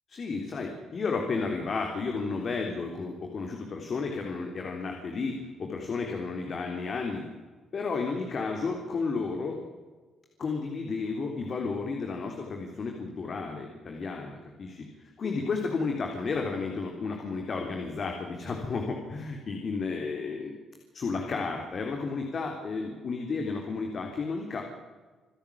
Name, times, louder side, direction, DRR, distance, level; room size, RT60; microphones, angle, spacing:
voice 1, 0.1-7.2 7.7-9.6 10.4-20.6 20.9-24.6, left 4 dB, 50° left, 3 dB, 3.5 m, -32 dB
27.0 x 11.5 x 8.6 m, 1.3 s
cardioid pair, 90°, 0 cm